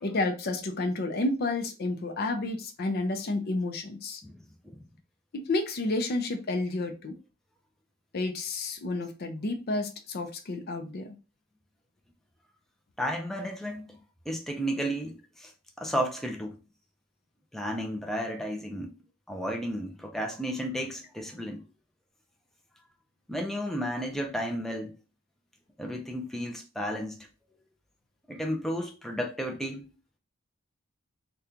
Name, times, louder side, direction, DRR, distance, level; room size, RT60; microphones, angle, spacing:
voice 1, 0.0-4.2 5.3-7.1 8.1-11.2, left 2 dB, 50° left, 0.5 m, -30 dB
voice 2, 4.2-4.8 13.0-14.0 14.3-15.5 15.8-16.6 17.5-18.9 19.3-21.6 23.3-25.0 25.8-27.3 27.5-27.6 28.3-29.8, equal, ahead, 0.4 m, -33 dB
2.9 x 2.2 x 3.6 m
head